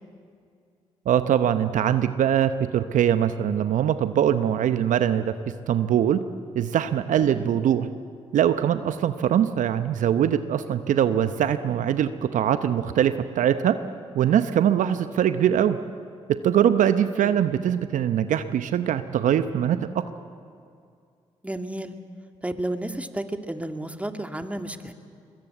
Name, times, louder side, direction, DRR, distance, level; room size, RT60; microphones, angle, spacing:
voice 1, 1.1-5.3 5.7-6.2 6.5-7.9 8.3-13.8 14.1-15.8 16.3-20.0, right 9 dB, 70° right, 11 dB, 0.8 m, -22 dB
voice 2, 7.2-7.5 14.8-15.0 17.2-17.4 21.4-21.9 22.4-24.9, right 1 dB, 10° right, 6 dB, 2.1 m, -32 dB
22.0 x 21.5 x 8.2 m, 2.3 s
hypercardioid pair, 45°, 14 cm